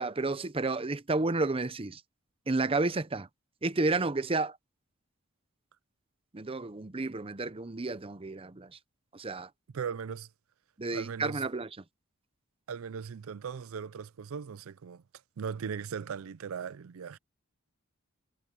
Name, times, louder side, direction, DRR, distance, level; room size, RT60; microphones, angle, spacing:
voice 1, 0.0-2.0 2.5-3.3 3.6-4.6 6.3-8.8 9.1-9.5 10.8-11.7, right 3 dB, 25° right, 0.7 m, -31 dB
voice 2, 9.7-10.3 10.9-11.4 12.7-15.0 15.4-17.2, right 6 dB, 75° right, 0.4 m, -38 dB
head